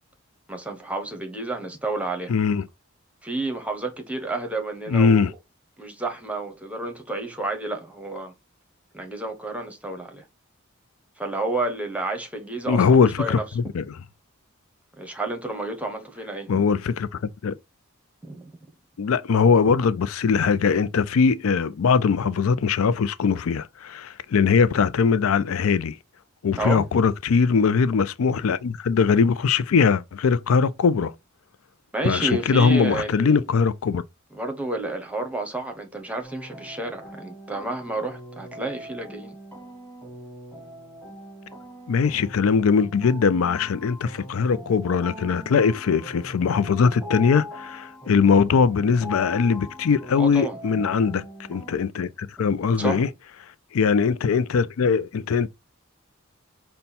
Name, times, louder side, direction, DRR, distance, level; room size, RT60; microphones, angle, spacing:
voice 1, 0.5-2.3 3.2-5.3 5.8-8.3 8.9-10.2 11.2-12.8 13.2-13.4 15.0-16.6 18.2-18.5 26.6-26.9 31.9-33.4 34.3-39.3 50.1-50.6 52.8-53.0, right 2 dB, 5° right, 0.9 m, -30 dB
voice 2, 2.3-2.6 4.9-5.3 12.7-14.0 16.5-17.6 19.0-26.0 26.4-31.1 32.0-34.0 41.9-51.2 51.5-53.1 53.7-55.5, left 5 dB, 90° left, 0.4 m, -21 dB
sound 1, 36.2-51.8, left 1 dB, 10° left, 1.8 m, -41 dB
5.4 x 2.2 x 4.2 m
head